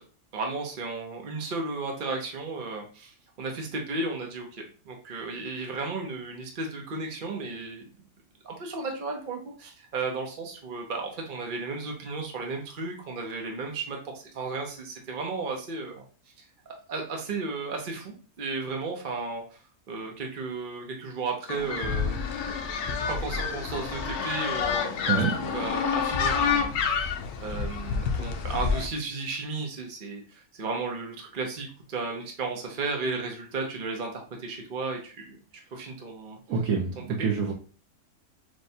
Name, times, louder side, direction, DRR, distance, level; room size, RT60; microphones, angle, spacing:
voice 1, 0.3-7.8 8.4-16.0 16.4-16.5 16.9-19.6 19.9-22.2 23.1-26.8 27.4-35.4 35.7-36.4 37.0-37.1, right 3 dB, 45° right, 1 dB, 0.7 m, -34 dB
African penguins at Boulders Beach, 21.5-28.9, left 6 dB, 85° left, 1.2 m, -28 dB
voice 2, 36.5-37.5, right 6 dB, 70° right, 0 dB, 1.0 m, -26 dB
6.3 x 2.2 x 2.7 m, 0.38 s
omnidirectional pair, 1.6 m